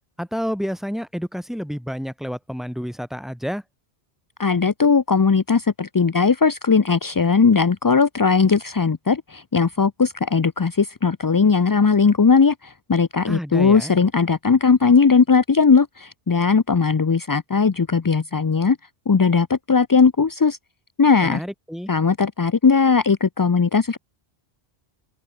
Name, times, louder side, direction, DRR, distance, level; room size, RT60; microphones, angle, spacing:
voice 1, 0.2-3.6 13.3-13.9 21.2-21.9, equal, ahead, 4.4 m, -29 dB
voice 2, 4.4-18.8 19.1-20.6 21.0-21.4 21.9-24.0, left 5 dB, 35° left, 0.3 m, -18 dB
open air
omnidirectional pair, 1.1 m